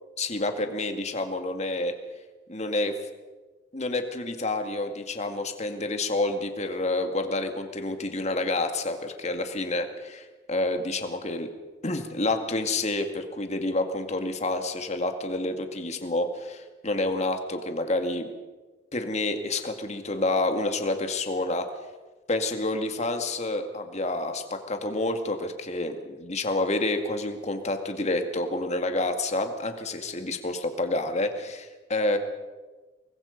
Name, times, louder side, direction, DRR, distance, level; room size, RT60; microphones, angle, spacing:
voice 1, 0.2-1.9 2.5-3.0 3.7-11.5 11.8-18.3 18.9-21.7 22.3-32.2, left 2 dB, 40° left, 6 dB, 2.1 m, -28 dB
25.0 x 20.5 x 5.3 m, 1.3 s
head